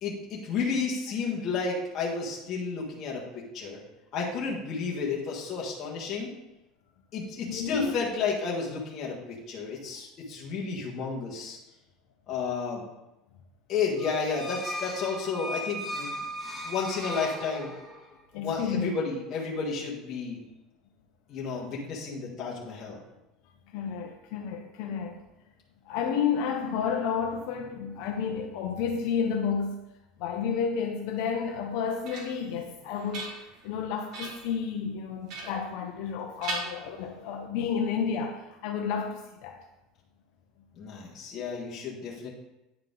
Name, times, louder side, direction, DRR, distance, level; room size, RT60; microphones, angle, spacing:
voice 1, 0.0-3.8 4.1-6.3 7.1-11.6 12.3-12.8 13.7-16.2 16.6-17.7 18.3-20.4 21.3-23.0 40.8-42.3, left 5 dB, 35° left, -5 dB, 1.6 m, -32 dB
voice 2, 7.5-8.0 18.3-18.9 23.7-25.3 25.9-29.8 30.2-39.6, left 6 dB, 65° left, 3 dB, 0.7 m, -31 dB
sound 1, 14.0-18.1, equal, 5° right, 1.0 m, -37 dB
sound 2, 31.5-32.5 32.9-33.7 34.1-34.5 35.3-36.1 36.4-37.4, right 3 dB, 50° right, 2.1 m, -39 dB
9.4 x 4.8 x 3.8 m, 0.94 s
supercardioid pair, 145°, 0 cm